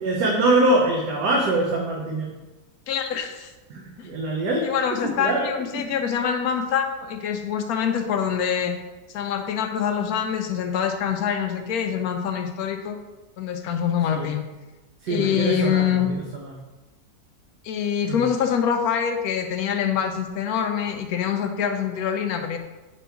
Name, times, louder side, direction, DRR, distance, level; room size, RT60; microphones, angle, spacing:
voice 1, 0.0-2.3 3.7-4.7 5.0-5.5 5.7-5.8 14.1-14.3 15.0-15.9 18.1-18.2, right 2 dB, 80° right, -2 dB, 1.4 m, -23 dB
voice 2, 2.9-3.5 4.6-8.7 9.1-13.0 13.4-14.4 15.1-16.1 17.6-22.6, left 8 dB, 70° left, 6 dB, 1.0 m, -25 dB
5.1 x 4.5 x 4.5 m, 1.1 s
omnidirectional pair, 1.7 m